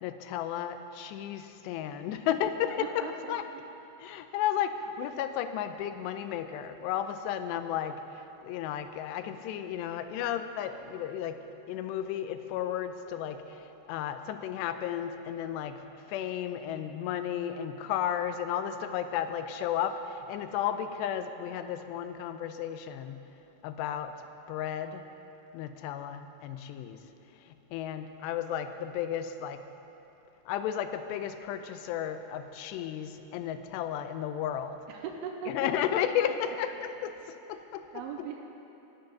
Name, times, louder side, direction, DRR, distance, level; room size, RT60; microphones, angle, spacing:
voice 1, 0.0-3.4 4.0-8.0 8.4-11.4 11.7-15.8 16.1-23.2 23.6-24.1 24.5-25.0 25.5-27.0 27.7-29.6 30.5-34.8 35.5-37.8 38.2-38.3, left 10 dB, 85° left, 9 dB, 2.7 m, -33 dB
voice 2, 2.8-3.6 34.9-36.1 37.9-38.4, right 7 dB, 80° right, 3 dB, 2.4 m, -40 dB
14.0 x 9.8 x 5.9 m, 3.0 s
omnidirectional pair, 4.9 m